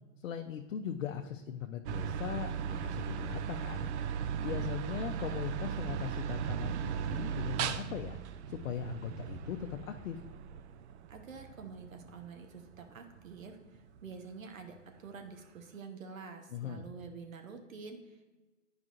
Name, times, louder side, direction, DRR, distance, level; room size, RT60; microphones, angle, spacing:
voice 1, 0.2-3.9 4.4-8.2 8.5-10.2 16.5-16.9, left 9 dB, 80° left, 4 dB, 0.6 m, -39 dB
sound 1, 1.9-14.2, right 8 dB, 60° right, 0.5 m, -37 dB
voice 2, 11.1-18.3, right 5 dB, 85° right, 5 dB, 1.1 m, -48 dB
9.5 x 4.9 x 2.6 m, 1.2 s
hypercardioid pair, 125°, 39 cm